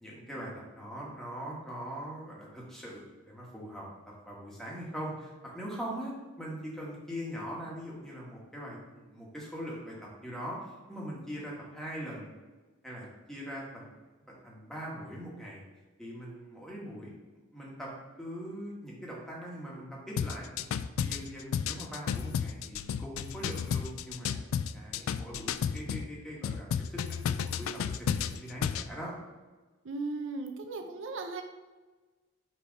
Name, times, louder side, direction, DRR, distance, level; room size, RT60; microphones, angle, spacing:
voice 1, 0.0-0.5 0.8-3.9 4.3-10.0 10.2-10.6 10.9-12.3 12.8-13.9 14.2-15.6 16.0-17.1 17.5-17.9 18.2-20.6 21.0-24.4 24.7-29.1, equal, ahead, -4 dB, 1.4 m, -41 dB
sound 1, 20.2-26.1 26.4-28.9, left 7 dB, 90° left, 0.3 m, -32 dB
voice 2, 29.8-31.4, right 3 dB, 70° right, 5 dB, 0.6 m, -36 dB
6.1 x 3.4 x 5.1 m, 1.3 s
head